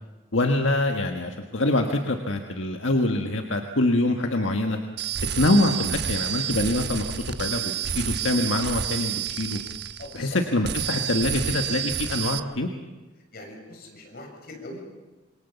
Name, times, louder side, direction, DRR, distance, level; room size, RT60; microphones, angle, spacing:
voice 1, 0.3-4.8 5.4-9.6 10.1-12.7, left 2 dB, 75° left, 4 dB, 1.6 m, -25 dB
sound 1, 5.0-10.3 10.6-12.4, right 9 dB, 60° right, 1.1 m, -29 dB
voice 2, 10.0-10.4 13.3-14.9, left 1 dB, 55° left, 1 dB, 6.8 m, -41 dB
27.0 x 22.5 x 7.1 m, 1.2 s
head